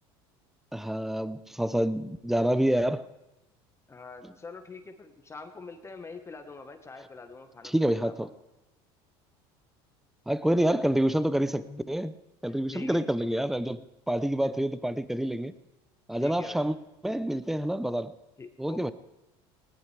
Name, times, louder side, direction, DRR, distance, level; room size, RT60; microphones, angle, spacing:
voice 1, 0.7-3.0 7.6-8.3 10.3-12.1 12.4-15.5 16.1-16.8 17.0-18.1 18.6-18.9, right 1 dB, ahead, 15 dB, 0.6 m, -27 dB
voice 2, 3.9-8.3 10.7-10.8 11.6-11.9 12.5-13.0 14.4-14.5 16.2-16.6 18.4-18.9, left 4 dB, 20° left, 7 dB, 1.3 m, -44 dB
19.5 x 19.0 x 3.4 m, 0.96 s
supercardioid pair, 95°, 13 cm